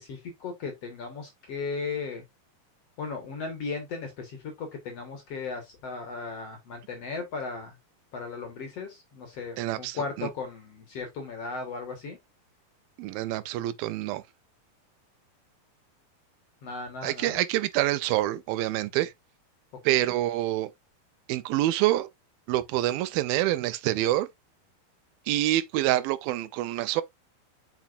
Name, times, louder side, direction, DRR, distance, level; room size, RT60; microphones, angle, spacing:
voice 1, 0.0-2.2 3.0-7.8 8.1-12.2 16.6-17.4 19.9-20.2, left 4 dB, 55° left, 2.0 m, -36 dB
voice 2, 9.6-10.3 13.0-14.2 17.0-19.1 19.9-20.7 21.3-22.1 22.5-24.3 25.3-27.0, right 15 dB, 80° right, 2.4 m, -26 dB
7.3 x 6.0 x 2.5 m
omnidirectional pair, 4.4 m